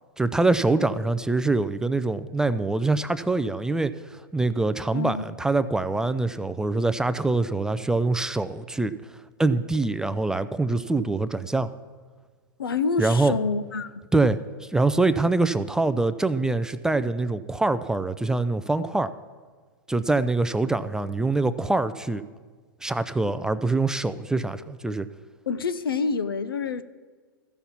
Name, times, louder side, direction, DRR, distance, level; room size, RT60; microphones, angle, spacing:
voice 1, 0.2-8.9 9.4-11.7 13.0-13.4 14.1-19.1 19.9-22.2 22.8-25.1, right 3 dB, 5° right, 0.3 m, -24 dB
voice 2, 4.9-5.3 12.6-14.0 25.5-26.8, left 4 dB, 85° left, 0.6 m, -27 dB
14.0 x 5.8 x 7.1 m
hypercardioid pair, 110°, 12 cm